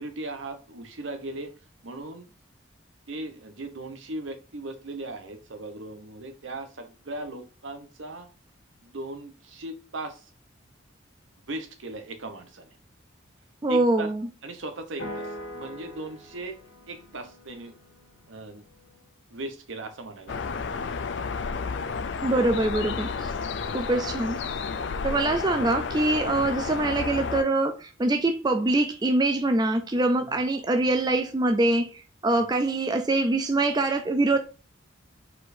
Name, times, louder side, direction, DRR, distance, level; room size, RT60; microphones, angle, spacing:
voice 1, 0.0-1.6 1.8-2.3 3.1-8.3 8.8-10.3 11.5-12.7 13.7-14.1 14.4-16.6 16.9-17.8 18.3-18.6 19.3-20.4 22.3-22.4 30.2-30.4 32.3-32.4, right 2 dB, 70° right, 0.9 m, -38 dB
voice 2, 13.6-14.3 22.2-23.3 23.7-24.4 25.0-34.4, right 2 dB, 20° right, 0.4 m, -24 dB
sound 1, 15.0-19.1, equal, 85° left, 1.9 m, -42 dB
sound 2, 20.3-27.4, left 5 dB, 60° left, 0.4 m, -31 dB
4.5 x 4.4 x 2.6 m
head